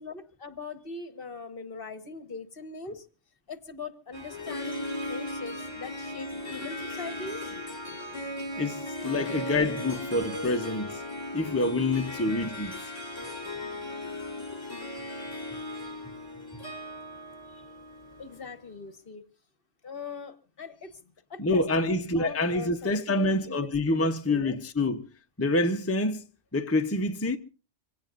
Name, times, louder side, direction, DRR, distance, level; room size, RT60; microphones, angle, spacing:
voice 1, 0.0-3.1 3.5-8.5 9.0-9.1 14.7-14.8 17.5-17.7 18.2-19.2 19.8-20.9 21.3-24.6, left 4 dB, 50° left, 1.4 m, -41 dB
Harp, 4.1-18.6, left 1 dB, 30° left, 3.9 m, -37 dB
voice 2, 8.6-11.0 11.3-12.8 13.4-13.6 21.4-25.1 25.4-26.2 26.5-27.4, left 2 dB, 15° left, 0.8 m, -27 dB
25.5 x 17.0 x 2.6 m
omnidirectional pair, 1.2 m